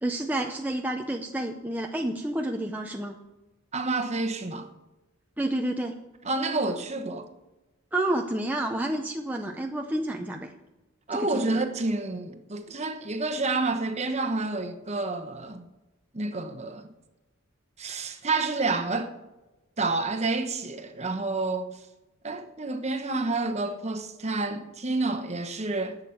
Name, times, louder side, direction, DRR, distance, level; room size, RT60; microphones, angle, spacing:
voice 1, 0.0-3.2 5.4-6.0 7.9-10.5 11.1-11.6, right 1 dB, 10° right, 0.6 m, -29 dB
voice 2, 3.7-4.7 6.2-7.3 11.1-15.7 16.1-16.9 17.8-19.2 19.8-21.8 22.2-26.0, right 3 dB, 30° right, 1.0 m, -29 dB
11.5 x 8.1 x 7.2 m
head